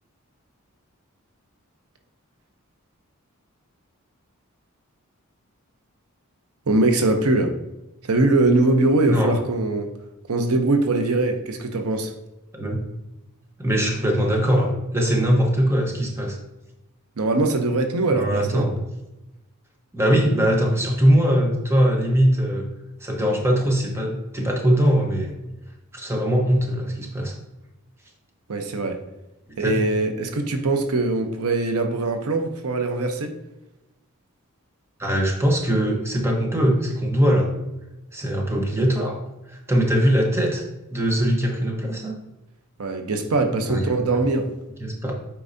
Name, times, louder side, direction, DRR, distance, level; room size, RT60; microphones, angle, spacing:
voice 1, 6.7-7.5 8.0-9.9 10.3-12.1 17.2-18.7 28.5-29.0 29.6-33.4 42.8-44.5, right 2 dB, 80° right, 6 dB, 0.8 m, -22 dB
voice 2, 12.5-12.8 13.6-16.4 18.1-18.8 19.9-22.7 23.0-25.3 25.9-27.3 29.6-29.9 35.0-37.5 38.1-39.2 39.5-40.6 40.9-42.1 43.7-44.1 44.8-45.1, equal, 10° right, 0 dB, 1.1 m, -21 dB
8.4 x 4.6 x 2.7 m, 0.94 s
head